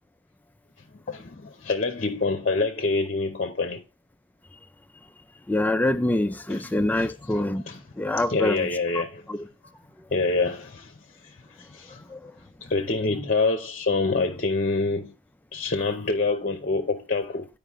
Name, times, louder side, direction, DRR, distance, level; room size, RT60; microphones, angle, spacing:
voice 1, 1.1-3.8 6.5-6.6 7.0-7.8 8.2-9.2 10.1-10.9 11.6-12.0 12.6-15.1 15.5-17.5, left 3 dB, 40° left, 0.7 m, -26 dB
voice 2, 5.5-7.6 8.0-8.7 9.3-9.5 12.1-12.3, left 1 dB, 10° left, 0.3 m, -25 dB
9.9 x 5.0 x 3.5 m
head